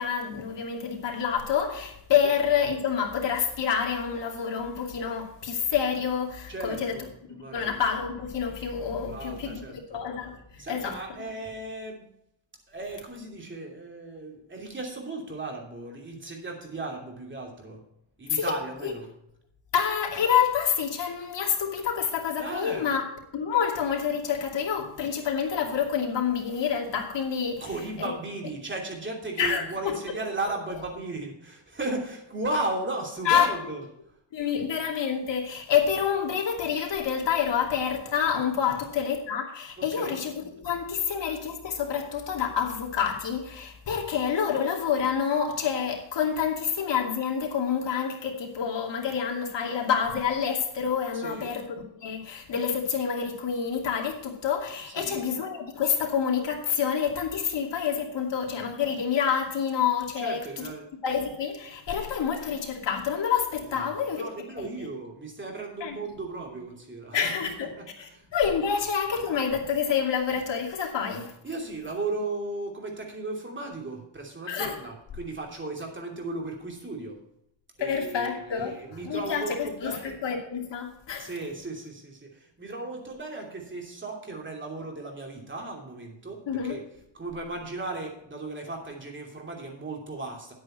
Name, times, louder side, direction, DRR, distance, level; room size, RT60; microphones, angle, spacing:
voice 1, 0.0-7.0 7.5-11.3 18.3-18.5 18.8-18.9 19.7-23.0 23.3-27.7 28.0-28.1 29.4-30.0 33.2-33.5 34.3-60.7 61.0-64.3 64.6-64.9 65.8-66.0 67.1-67.7 68.0-71.3 74.5-74.8 77.8-81.3 86.5-86.8, left 7 dB, 65° left, 0 dB, 2.6 m, -28 dB
voice 2, 6.5-7.7 9.1-9.8 10.6-12.1 12.7-17.8 18.2-19.1 22.4-22.9 27.6-33.8 38.7-38.8 39.8-40.2 51.1-51.6 54.9-55.3 60.2-60.9 63.6-68.8 71.4-77.2 77.8-80.2 81.2-86.8 87.1-90.5, right 2 dB, 25° right, 1 dB, 2.9 m, -36 dB
9.4 x 8.8 x 4.4 m, 0.79 s
cardioid pair, 120°, 46 cm